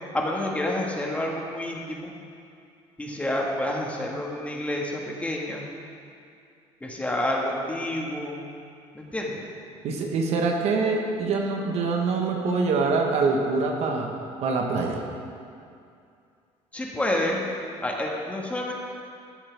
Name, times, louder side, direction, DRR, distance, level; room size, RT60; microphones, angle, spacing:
voice 1, 0.1-2.1 3.0-5.7 6.8-8.4 9.0-9.4 16.7-17.4 17.8-18.7, left 1 dB, 10° left, -1 dB, 1.7 m, -29 dB
voice 2, 9.8-14.1 14.4-15.0, right 4 dB, 60° right, 1 dB, 1.4 m, -24 dB
14.0 x 10.0 x 3.5 m, 2.4 s
cardioid pair, 105°, 12 cm